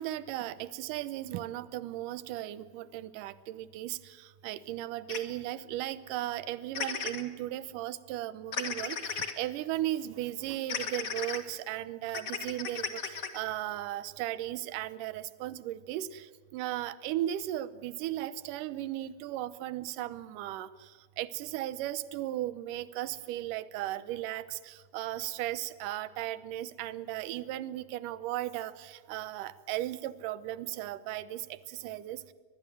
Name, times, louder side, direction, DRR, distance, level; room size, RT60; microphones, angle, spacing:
voice 1, 0.0-4.0 4.4-16.2 16.5-20.7 21.2-31.4 31.8-32.2, right 14 dB, 75° right, 15 dB, 2.3 m, -36 dB
sound 1, 5.1-5.2 6.7-7.2 8.5-9.3 10.7-11.4 12.1-13.4, left 6 dB, 60° left, 0.8 m, -35 dB
23.5 x 20.0 x 7.7 m, 1.4 s
omnidirectional pair, 4.0 m